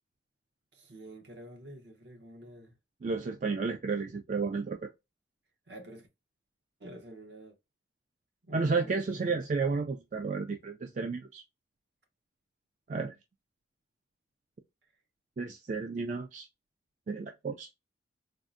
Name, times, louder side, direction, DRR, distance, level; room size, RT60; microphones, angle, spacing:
voice 1, 0.7-2.8 5.7-6.1 6.8-7.6 8.4-9.4, right 1 dB, 65° right, 0.8 m, -48 dB
voice 2, 3.0-4.9 8.5-11.4 12.9-13.1 15.4-16.5 17.1-17.7, right 4 dB, 40° right, 0.3 m, -32 dB
3.5 x 2.1 x 2.5 m
head